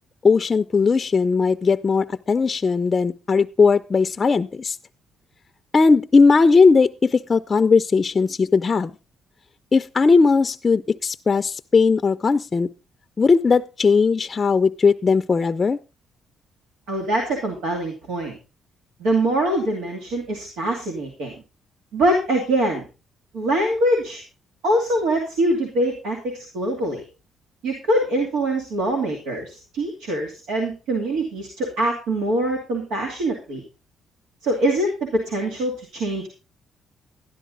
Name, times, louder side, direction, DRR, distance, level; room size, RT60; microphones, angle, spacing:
voice 1, 0.2-4.8 5.7-8.9 9.7-12.7 13.2-15.8, left 4 dB, 30° left, 9 dB, 0.5 m, -18 dB
voice 2, 16.9-18.4 19.0-21.4 21.9-22.9 23.3-24.2 24.6-27.0 27.6-33.6 34.4-36.3, right 1 dB, 90° right, 1 dB, 2.6 m, -23 dB
12.5 x 11.0 x 3.9 m, 0.30 s
cardioid pair, 90°, 0 cm